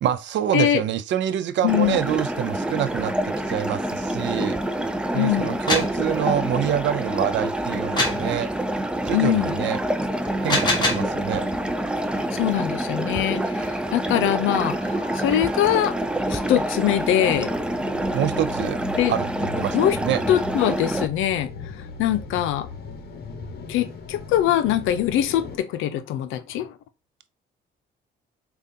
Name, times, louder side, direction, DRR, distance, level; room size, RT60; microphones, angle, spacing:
voice 1, 0.0-4.6 5.1-8.5 9.0-9.8 10.4-11.5 18.1-18.8 19.1-19.3 19.6-19.8 20.0-20.2, right 11 dB, 65° right, 0.4 m, -26 dB
voice 2, 1.6-2.1 5.2-5.6 9.1-9.6 12.3-16.0 16.3-17.5 19.0-19.1 19.7-20.0 20.3-21.5 22.0-22.7 23.7-26.7, left 11 dB, 90° left, 0.5 m, -23 dB
sound 1, 1.7-21.1, right 1 dB, 5° right, 0.5 m, -27 dB
sound 2, 5.4-6.0 8.0-8.3 10.3-11.1, left 2 dB, 20° left, 1.4 m, -23 dB
sound 3, 10.4-25.6, left 4 dB, 55° left, 0.9 m, -40 dB
5.0 x 2.3 x 2.7 m
cardioid pair, 90°, 20 cm